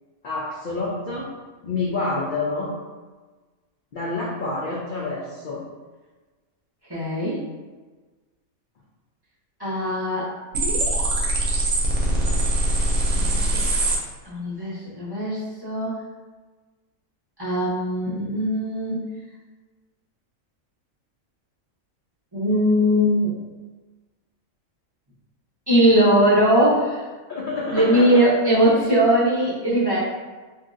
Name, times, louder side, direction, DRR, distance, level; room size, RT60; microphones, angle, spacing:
voice 1, 0.2-1.3 1.6-2.7 3.9-5.6 13.1-13.7 27.3-28.2, left 3 dB, 70° left, -5 dB, 0.4 m, -28 dB
voice 2, 6.9-7.4 9.6-10.3 14.3-15.9 17.4-19.0 22.3-23.3 25.7-27.0 27.7-30.0, equal, 25° right, -9 dB, 0.7 m, -20 dB
sound 1, 10.5-14.0, right 2 dB, 85° right, 1.1 m, -22 dB
3.0 x 2.7 x 2.5 m, 1.3 s
omnidirectional pair, 1.4 m